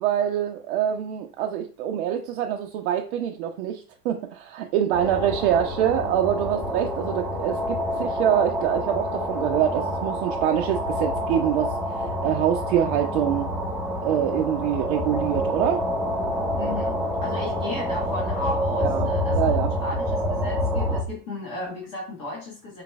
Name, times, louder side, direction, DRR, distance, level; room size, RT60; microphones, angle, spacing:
voice 1, 0.0-11.7 12.2-13.5 14.0-15.8 18.8-19.7, right 10 dB, 50° right, 3 dB, 0.5 m, -25 dB
sound 1, 4.9-21.0, equal, 5° right, 0.6 m, -27 dB
voice 2, 16.6-22.8, left 2 dB, 50° left, -4 dB, 1.5 m, -35 dB
4.9 x 3.2 x 2.3 m, 0.39 s
hypercardioid pair, 95°, 47 cm